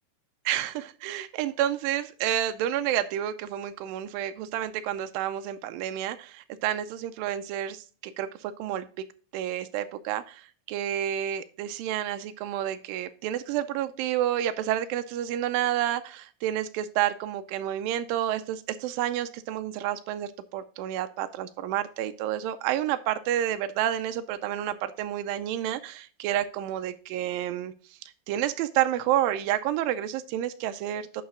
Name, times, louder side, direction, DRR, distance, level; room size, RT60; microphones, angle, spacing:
voice 1, 0.5-8.9 9.3-27.7 28.3-31.2, right 11 dB, 85° right, 10 dB, 2.0 m, -29 dB
10.5 x 4.8 x 3.7 m, 0.40 s
omnidirectional pair, 4.6 m